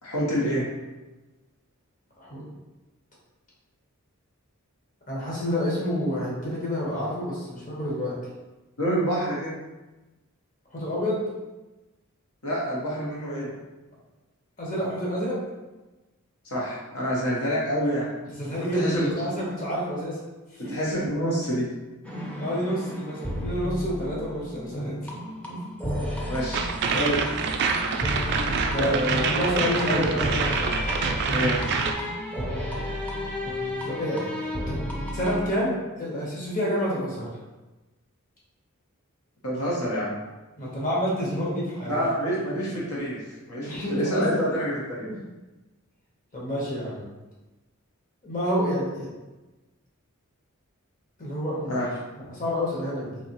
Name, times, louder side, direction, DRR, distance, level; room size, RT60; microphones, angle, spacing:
voice 1, 0.0-0.7 8.8-9.5 12.4-13.5 16.4-18.1 18.4-19.2 20.6-21.7 22.3-22.4 26.3-26.7 26.9-27.2 28.7-29.3 29.8-30.2 30.5-30.8 31.2-31.8 39.4-40.2 41.9-43.2 43.5-45.1 51.7-51.9, equal, 80° left, -5 dB, 1.0 m, -27 dB
voice 2, 5.1-8.1 10.7-11.2 14.6-15.4 18.4-20.2 20.5-20.7 22.4-25.1 25.5-25.6 28.7-30.3 33.8-34.8 35.1-37.3 40.5-42.1 42.5-42.6 43.6-44.4 45.1-45.2 46.3-47.0 48.2-49.1 51.2-51.8 52.2-53.2, equal, 40° left, -6 dB, 1.1 m, -29 dB
sound 1, 22.0-35.4, equal, 5° left, 0.5 m, -32 dB
sound 2, 26.5-31.9, right 5 dB, 50° right, 0.3 m, -26 dB
3.8 x 2.7 x 2.9 m, 1.1 s
head